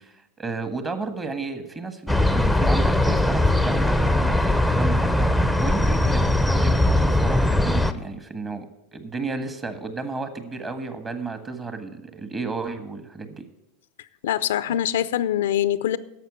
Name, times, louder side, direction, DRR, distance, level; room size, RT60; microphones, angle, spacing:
voice 1, 0.0-8.6 8.9-13.4, right 3 dB, 25° right, 9 dB, 1.6 m, -33 dB
sound 1, 2.1-7.9, left 1 dB, ahead, 0.8 m, -20 dB
voice 2, 14.2-16.0, left 11 dB, 70° left, 16 dB, 0.5 m, -23 dB
11.0 x 7.2 x 8.4 m, 0.93 s
hypercardioid pair, 90°, 0 cm